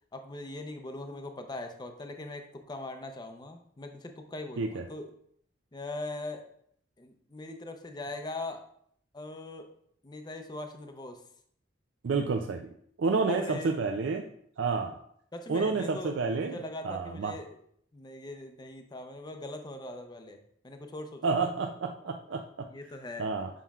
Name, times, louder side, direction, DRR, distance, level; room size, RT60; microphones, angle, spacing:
voice 1, 0.1-5.1 5.7-6.5 7.0-8.7 9.1-9.7 10.0-11.2 13.3-13.8 15.3-17.6 17.9-20.4 20.6-21.5 22.7-23.3, left 2 dB, 20° left, 5 dB, 0.5 m, -41 dB
voice 2, 12.0-12.7 13.0-14.3 14.6-15.0 15.5-16.6 16.8-17.4 21.2-22.7 23.2-23.5, right 4 dB, 65° right, 4 dB, 0.4 m, -29 dB
7.3 x 5.7 x 2.3 m, 0.66 s
head